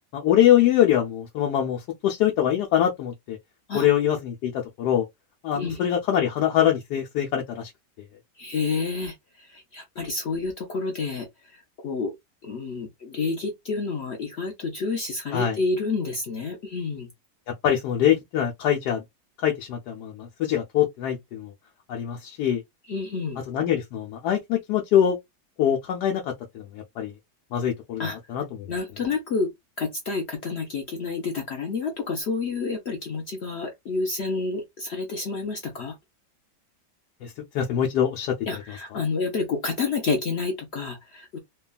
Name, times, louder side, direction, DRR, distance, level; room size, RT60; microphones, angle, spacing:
voice 1, 0.1-3.4 3.7-4.5 4.8-5.0 5.4-7.7 15.3-15.6 17.5-19.0 19.4-21.5 21.9-22.6 23.5-25.2 25.6-26.2 26.5-27.1 27.5-28.7 37.2-38.3 38.9-39.0, left 10 dB, 80° left, 1.2 m, -23 dB
voice 2, 8.4-11.3 11.5-12.1 12.4-17.1 22.9-23.4 28.0-28.2 28.7-29.5 29.8-36.0 38.5-41.4, left 4 dB, 60° left, 0.7 m, -29 dB
3.0 x 2.2 x 2.2 m
omnidirectional pair, 1.8 m